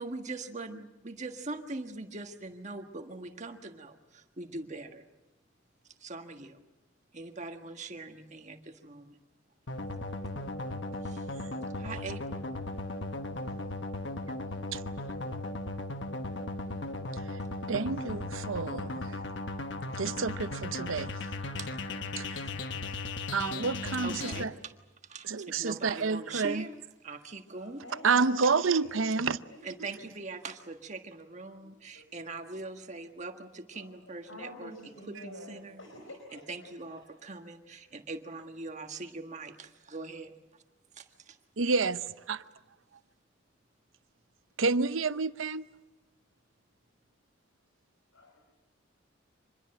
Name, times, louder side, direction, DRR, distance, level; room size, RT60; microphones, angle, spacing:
voice 1, 0.0-5.0 6.0-6.6 7.1-9.2 11.0-11.3 11.8-12.5 21.3-21.9 22.2-22.9 24.0-24.7 25.0-26.7 27.0-27.8 29.6-34.7 35.1-35.8 36.3-40.3 40.9-41.4, right 3 dB, 35° right, 1.6 m, -42 dB
sound 1, 9.7-24.4, left 2 dB, 65° left, 1.3 m, -37 dB
voice 2, 17.7-19.1 20.0-21.1 22.2-22.4 23.3-24.5 25.3-26.7 28.0-29.4 41.6-42.0 42.3-42.4 44.6-45.7, right 4 dB, 85° right, 0.7 m, -29 dB
voice 3, 27.5-29.9 31.5-32.3 33.7-37.0 48.1-48.4, left 1 dB, 85° left, 5.0 m, -49 dB
26.0 x 21.0 x 7.7 m
head